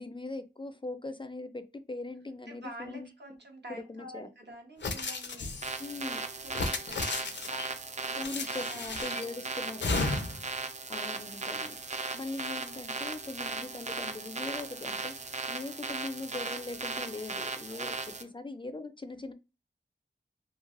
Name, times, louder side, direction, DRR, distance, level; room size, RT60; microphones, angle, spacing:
voice 1, 0.0-3.1 3.7-4.3 5.8-6.2 8.2-10.1 10.9-11.8 12.1-15.1 15.5-17.9 18.2-19.3, left 2 dB, 30° left, 0.3 m, -40 dB
voice 2, 2.5-7.7 8.0-10.0 17.7-17.9 18.1-18.3, right 1 dB, 70° right, 0.9 m, -49 dB
sound 1, 4.8-5.9 6.5-7.7 8.2-9.3 9.8-10.5, left 3 dB, 80° left, 0.5 m, -34 dB
sound 2, 5.6-18.2, right 3 dB, 40° right, 0.4 m, -37 dB
3.1 x 2.4 x 2.5 m
wide cardioid pair, 60°, 18 cm